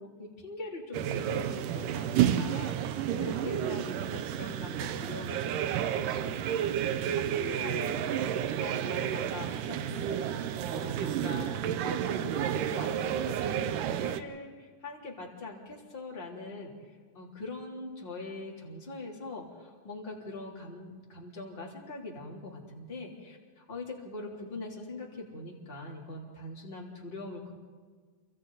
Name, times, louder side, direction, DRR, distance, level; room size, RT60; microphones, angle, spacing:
voice 1, 0.0-8.3 8.6-10.3 10.7-27.5, left 2 dB, 15° left, -2 dB, 2.9 m, -43 dB
sound 1, 0.9-14.2, right 10 dB, 85° right, 2.5 m, -31 dB
28.0 x 25.0 x 4.0 m, 1.6 s
omnidirectional pair, 3.8 m